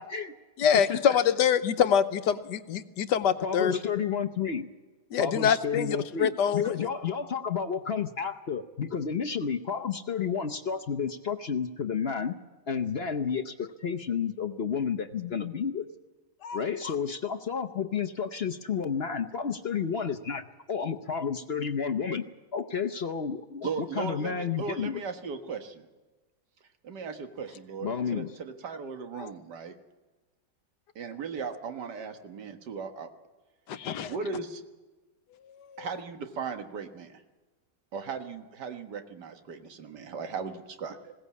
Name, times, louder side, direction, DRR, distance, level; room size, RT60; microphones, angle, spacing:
voice 1, 0.0-0.3 0.7-1.2 3.4-4.7 5.2-12.3 12.7-15.8 16.5-22.2 22.5-25.0 27.8-28.3, left 6 dB, 50° left, 8 dB, 0.8 m, -31 dB
voice 2, 0.6-3.8 5.1-6.9 16.4-16.6 16.8-16.9 29.2-29.3 33.7-34.1 35.7-35.9, left 8 dB, 75° left, 11 dB, 1.4 m, -25 dB
voice 3, 23.6-25.9 26.8-29.7 31.0-33.1 34.1-34.6 35.8-37.2 37.9-41.1, right 5 dB, 70° right, 7 dB, 2.0 m, -37 dB
20.5 x 17.0 x 8.4 m, 1.2 s
omnidirectional pair, 1.9 m